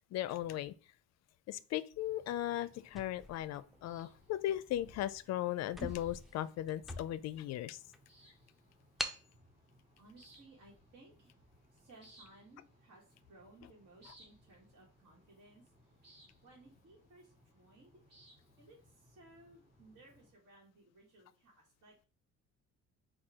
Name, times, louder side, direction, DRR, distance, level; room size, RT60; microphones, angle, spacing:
voice 1, 0.1-0.7 1.5-7.8, left 13 dB, 60° left, 0.4 m, -37 dB
sound 1, 2.0-20.3, equal, 35° right, 2.1 m, -65 dB
sound 2, 2.9-4.2 4.8-5.0 5.3-5.4 5.7-7.4 7.9-8.0 9.0-9.3, equal, ahead, 0.4 m, -43 dB
voice 2, 10.0-11.4 11.7-15.7 16.0-17.9 18.6-22.1, right 2 dB, 50° right, 1.5 m, -61 dB
4.4 x 2.3 x 4.7 m
cardioid pair, 125°, 31 cm